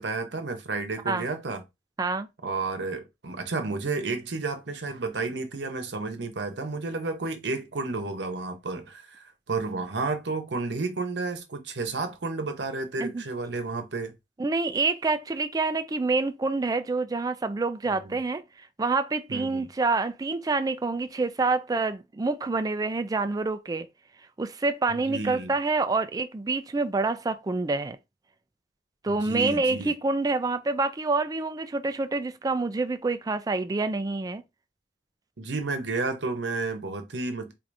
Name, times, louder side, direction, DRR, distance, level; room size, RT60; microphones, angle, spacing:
voice 1, 0.0-1.6 2.4-14.1 17.9-18.2 19.3-19.7 24.9-25.5 29.1-29.9 35.4-37.5, right 3 dB, 75° right, 0.8 m, -31 dB
voice 2, 14.4-18.4 18.8-23.9 24.4-28.0 29.0-34.4, right 3 dB, 20° right, 0.3 m, -27 dB
4.6 x 2.5 x 2.6 m
head